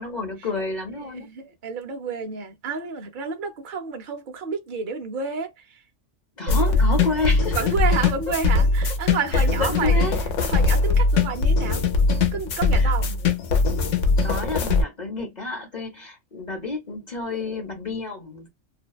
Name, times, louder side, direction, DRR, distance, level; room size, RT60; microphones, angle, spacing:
voice 1, 0.0-1.3 6.4-7.6 8.3-8.4 9.3-10.2 12.7-13.3 14.2-18.5, left 3 dB, 45° left, 0.7 m, -30 dB
voice 2, 1.1-5.5 6.5-6.8 7.2-10.1 10.4-11.8 12.3-13.1, right 5 dB, 50° right, 0.7 m, -30 dB
sound 1, 6.5-14.8, left 3 dB, 90° left, 1.0 m, -21 dB
2.6 x 2.1 x 2.3 m
omnidirectional pair, 1.2 m